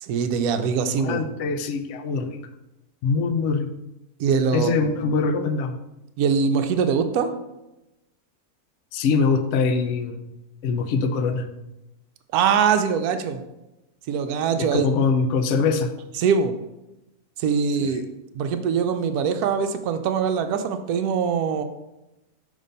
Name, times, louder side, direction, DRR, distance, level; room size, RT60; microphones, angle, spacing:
voice 1, 0.0-1.3 4.2-4.8 6.2-7.3 12.3-13.4 14.1-14.9 16.2-16.5 17.4-18.1 18.3-21.6, right 6 dB, 75° right, 7 dB, 1.0 m, -22 dB
voice 2, 1.0-2.4 3.0-3.7 4.5-5.8 8.9-10.3 10.6-11.5 14.6-15.9, left 4 dB, 65° left, 9 dB, 0.7 m, -23 dB
5.5 x 3.3 x 5.1 m, 0.95 s
omnidirectional pair, 1.6 m